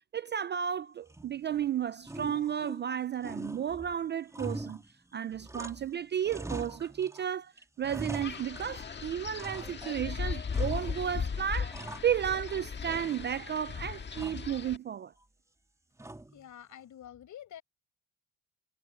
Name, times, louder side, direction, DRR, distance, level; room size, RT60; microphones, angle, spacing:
voice 1, 0.1-4.8 5.1-7.5 7.8-15.1, right 9 dB, 30° right, 0.4 m, -33 dB
sound 1, 1.1-1.6 2.0-2.9 3.2-6.0 6.2-7.2 7.6-8.9 9.4-10.0 10.5-11.2 11.5-12.6 12.9-13.6 14.1-14.6 16.0-16.5, right 2 dB, 10° right, 2.9 m, -43 dB
Wind, 8.2-14.8, left 6 dB, 30° left, 1.7 m, -37 dB
voice 2, 16.3-17.6, left 10 dB, 50° left, 5.8 m, -48 dB
cardioid pair, 120°, 37 cm